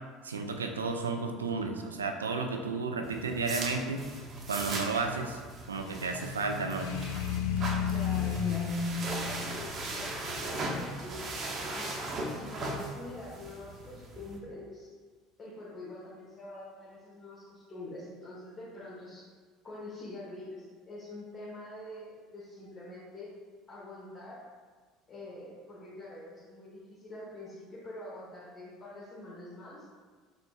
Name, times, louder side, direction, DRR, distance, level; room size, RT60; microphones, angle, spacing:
voice 1, 0.2-4.0 4.5-5.4 5.7-6.9, right 4 dB, 90° right, 5 dB, 0.3 m, -32 dB
sound 1, 3.0-14.4, right 2 dB, 40° right, 0.7 m, -39 dB
sound 2, 6.8-10.7, left 7 dB, 70° left, 0.3 m, -32 dB
voice 2, 7.9-8.7 9.0-11.9 12.3-14.9 15.4-19.3 19.6-23.3 23.7-24.4 25.1-29.9, left 1 dB, 40° left, -8 dB, 1.2 m, -45 dB
4.3 x 4.1 x 2.3 m, 1.5 s
hypercardioid pair, 70°, 0 cm